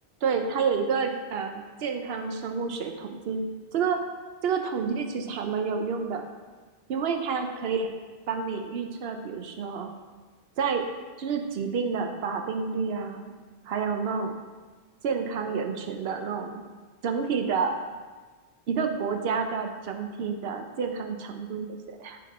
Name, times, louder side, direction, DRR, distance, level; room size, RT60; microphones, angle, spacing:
voice 1, 0.2-3.4 3.7-4.0 4.4-6.2 6.9-7.9 8.3-9.9 10.6-10.9 11.2-13.3 13.7-14.4 15.0-16.7 17.0-17.8 18.7-22.2, right 5 dB, 70° right, 5 dB, 0.9 m, -29 dB
9.0 x 4.4 x 4.3 m, 1.4 s
omnidirectional pair, 1.1 m